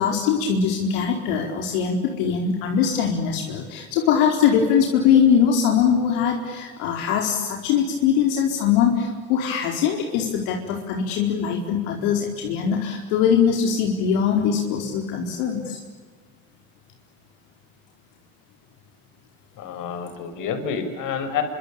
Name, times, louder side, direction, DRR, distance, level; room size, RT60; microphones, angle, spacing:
voice 1, 0.0-15.8, left 7 dB, 75° left, 2 dB, 4.7 m, -21 dB
voice 2, 19.6-21.4, left 7 dB, 55° left, 7 dB, 6.1 m, -28 dB
27.0 x 25.0 x 8.8 m, 1.4 s
supercardioid pair, 120°, 38 cm